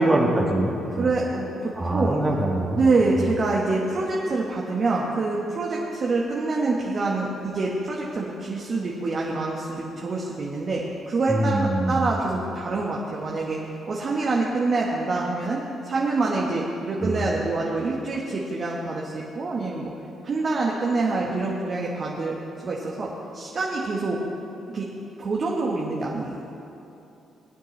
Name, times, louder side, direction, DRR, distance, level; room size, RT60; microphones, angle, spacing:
voice 1, 0.0-1.1 1.8-2.8 3.2-3.3 11.3-12.1 17.0-17.2, right 1 dB, 20° right, -1 dB, 1.6 m, -23 dB
voice 2, 0.9-2.2 2.8-13.6 13.9-19.9 20.2-22.3 22.6-24.2 24.7-24.9 25.2-26.4, right 3 dB, 50° right, -3 dB, 1.4 m, -26 dB
19.5 x 9.2 x 3.3 m, 2.8 s
hypercardioid pair, 45°, 0 cm